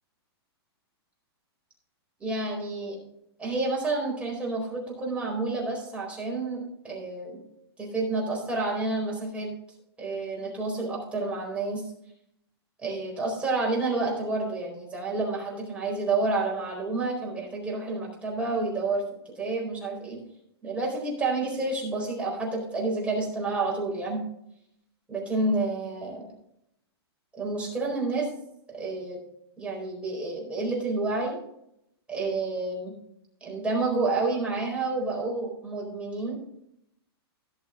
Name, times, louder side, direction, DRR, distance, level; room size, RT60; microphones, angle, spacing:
voice 1, 2.2-2.9 3.4-7.4 7.8-9.5 10.0-11.8 12.8-19.0 19.4-20.2 20.6-24.2 25.1-26.3 27.3-28.3 28.7-29.2 29.6-31.4 32.1-32.9 33.4-36.4, right 3 dB, 10° right, -2 dB, 4.4 m, -29 dB
17.0 x 6.4 x 3.7 m, 0.76 s
hypercardioid pair, 140°, 14 cm